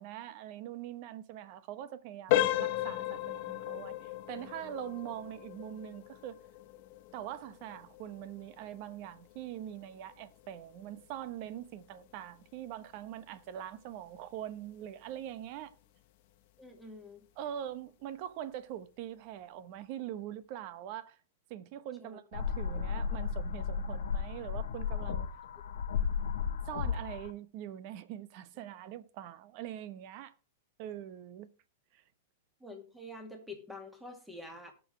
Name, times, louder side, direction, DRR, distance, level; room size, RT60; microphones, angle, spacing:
voice 1, 0.0-6.4 7.1-15.8 17.4-21.2 21.5-25.3 26.7-30.3 30.8-31.5 31.9-32.0, right 11 dB, 45° right, 1.0 m, -43 dB
sound 1, 2.3-13.0 13.3-13.6 14.1-14.2 14.7-14.9, left 14 dB, 50° left, 1.1 m, -36 dB
voice 2, 16.6-17.2 22.0-22.2 32.6-34.7, left 2 dB, 5° right, 2.3 m, -47 dB
sound 2, 22.3-27.3, left 6 dB, 85° left, 1.5 m, -34 dB
18.5 x 6.3 x 3.3 m
supercardioid pair, 145°, 0 cm